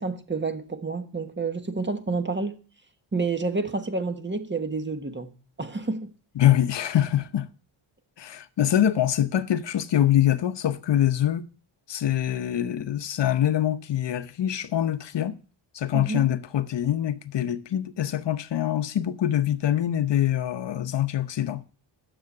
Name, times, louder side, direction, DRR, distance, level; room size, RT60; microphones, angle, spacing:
voice 1, 0.0-2.6 3.1-6.1 15.9-16.3, right 3 dB, 25° right, 1.4 m, -29 dB
voice 2, 6.4-7.5 8.2-11.5 11.9-15.4 15.7-21.6, left 11 dB, 65° left, 0.9 m, -24 dB
10.0 x 7.0 x 7.9 m
wide cardioid pair, 120°, 46 cm